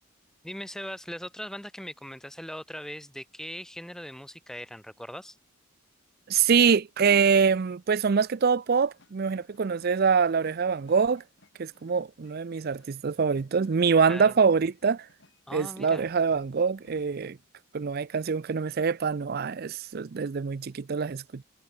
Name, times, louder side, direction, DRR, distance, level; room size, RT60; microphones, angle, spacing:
voice 1, 0.4-5.4 14.1-14.3 15.5-16.1, equal, ahead, 1.4 m, -40 dB
voice 2, 6.3-11.2 11.6-15.1 15.5-17.4 17.7-21.4, right 6 dB, 45° right, 0.4 m, -24 dB
sound 1, 8.4-17.3, left 2 dB, 55° left, 5.0 m, -61 dB
head